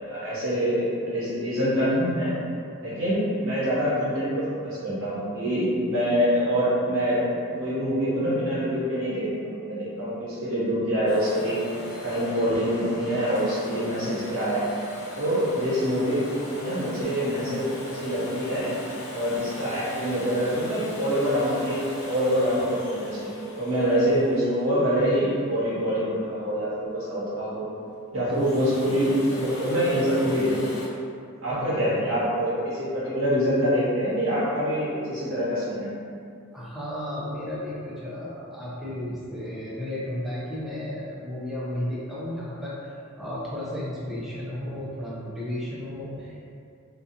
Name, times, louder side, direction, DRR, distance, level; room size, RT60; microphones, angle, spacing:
voice 1, 0.0-2.3 2.8-11.6 12.0-14.7 15.2-16.3 16.5-18.7 19.1-23.3 23.6-27.6 28.1-30.8 31.4-35.9, equal, 60° right, -10 dB, 0.9 m, -25 dB
Domestic sounds home sounds, 11.1-25.8 28.1-30.9, equal, 85° left, 0.6 m, -39 dB
voice 2, 36.5-46.4, left 1 dB, ahead, -8 dB, 0.4 m, -33 dB
2.4 x 2.3 x 2.7 m, 2.4 s
head